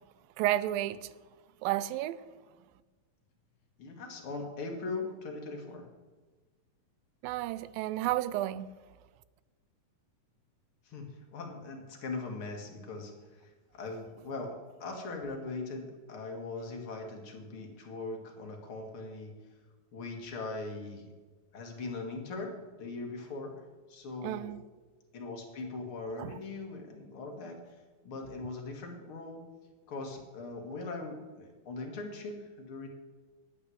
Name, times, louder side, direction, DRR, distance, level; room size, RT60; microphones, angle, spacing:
voice 1, 0.4-1.1 1.6-2.3 7.2-8.7 24.2-24.6 26.2-26.4, right 14 dB, 85° right, 2.3 m, -32 dB
voice 2, 3.8-5.9 10.8-19.3 19.9-21.1 21.5-23.5 23.9-24.5 25.1-27.8 28.0-29.4 29.9-32.9, left 3 dB, 45° left, 2.2 m, -40 dB
9.8 x 8.7 x 7.7 m
omnidirectional pair, 4.1 m